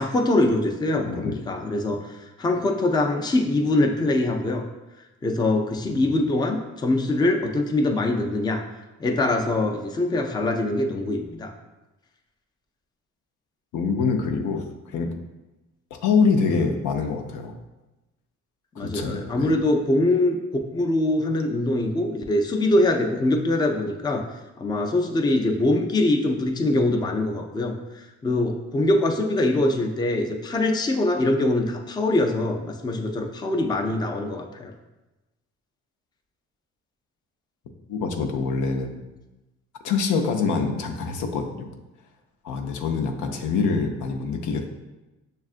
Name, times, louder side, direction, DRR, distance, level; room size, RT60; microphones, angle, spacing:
voice 1, 0.0-2.1 2.4-4.6 5.2-8.6 9.0-11.5 18.8-20.4 20.7-24.2 24.6-34.7, left 2 dB, 15° left, 3 dB, 0.4 m, -23 dB
voice 2, 1.1-1.4 5.8-6.0 13.7-14.6 14.9-15.1 15.9-17.5 18.8-19.5 37.9-39.0 39.8-41.7 42.4-44.7, left 5 dB, 75° left, 4 dB, 0.6 m, -25 dB
6.3 x 2.4 x 2.4 m, 1.0 s
cardioid pair, 90°, 30 cm